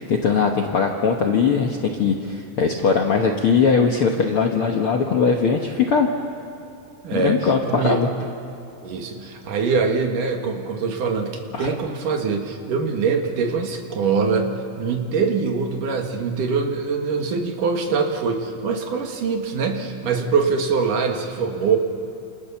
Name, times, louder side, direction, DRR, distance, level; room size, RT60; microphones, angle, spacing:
voice 1, 0.0-6.1 7.1-8.1 11.5-11.7, left 5 dB, 60° left, 2 dB, 1.5 m, -20 dB
voice 2, 7.0-8.0 8.8-21.8, right 5 dB, 70° right, 4 dB, 3.3 m, -23 dB
28.0 x 27.5 x 7.1 m, 2.6 s
omnidirectional pair, 4.1 m